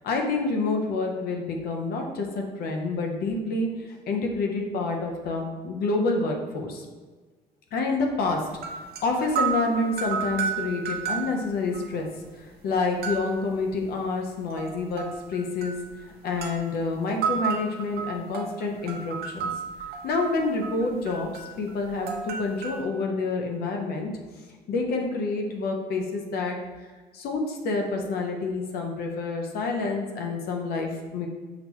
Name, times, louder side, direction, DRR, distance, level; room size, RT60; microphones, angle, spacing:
voice 1, 0.0-6.8 7.7-8.4 9.0-12.1 12.6-15.8 16.2-19.5 20.0-24.1 24.7-26.6 27.1-31.3, left 3 dB, 65° left, 2 dB, 0.7 m, -28 dB
sound 1, 8.5-11.9 12.2-12.3 13.0-13.4 14.5-15.9 16.4-16.7 17.2-22.8, right 6 dB, 65° right, 0.6 m, -32 dB
5.8 x 2.3 x 2.9 m, 1.4 s
cardioid pair, 110°, 17 cm